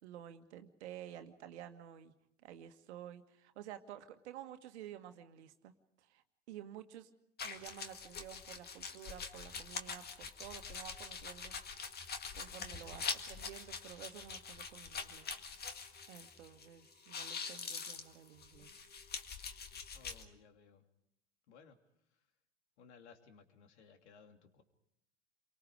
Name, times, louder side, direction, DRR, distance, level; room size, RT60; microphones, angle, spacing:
voice 1, 0.0-2.1 2.4-5.7 6.1-7.1 7.4-11.5 12.3-15.3 16.1-18.7, right 11 dB, 65° right, 8 dB, 1.8 m, -51 dB
sound 1, 7.4-16.7 16.9-20.2, left 5 dB, 25° left, 2.0 m, -44 dB
voice 2, 19.9-20.8 21.5-21.8 22.8-24.6, left 6 dB, 65° left, 6 dB, 3.0 m, -60 dB
29.0 x 24.0 x 5.0 m, 0.76 s
figure-of-eight pair, 85°, 37 cm